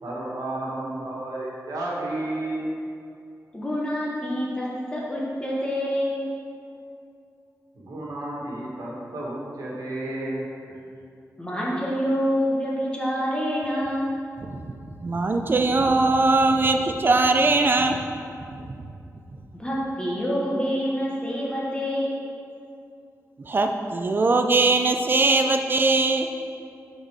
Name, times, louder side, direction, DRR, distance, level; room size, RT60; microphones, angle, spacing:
voice 1, 0.0-2.7 7.7-10.8, right 1 dB, 85° right, -4 dB, 1.5 m, -32 dB
voice 2, 3.5-6.2 11.4-14.1 19.6-22.2, equal, 15° left, -5 dB, 0.9 m, -26 dB
voice 3, 14.4-18.1 18.5-18.9 23.4-26.3, right 3 dB, 35° right, 5 dB, 0.4 m, -21 dB
6.6 x 4.1 x 4.7 m, 2.5 s
wide cardioid pair, 150°, 6 cm